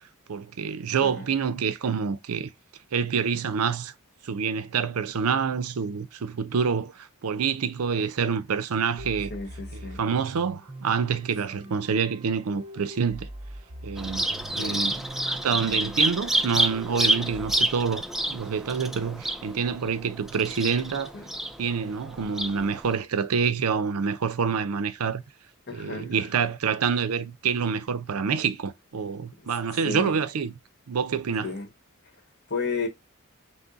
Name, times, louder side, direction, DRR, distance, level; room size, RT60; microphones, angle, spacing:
voice 1, 0.3-2.5 2.9-3.9 4.2-9.3 9.7-13.3 13.8-15.0 15.2-21.1 21.6-25.2 25.7-30.5 30.9-31.5, right 6 dB, 80° right, 0.5 m, -27 dB
voice 2, 1.0-1.3 9.3-10.0 14.6-15.0 21.1-21.3 25.7-26.2 29.8-30.2 31.4-31.7 32.5-32.9, left 4 dB, 50° left, 1.3 m, -33 dB
sound 1, 9.0-17.6, right 1 dB, 25° right, 0.7 m, -42 dB
Bird vocalization bird call bird song, 14.0-22.9, right 1 dB, ahead, 0.3 m, -29 dB
6.0 x 2.1 x 3.8 m
head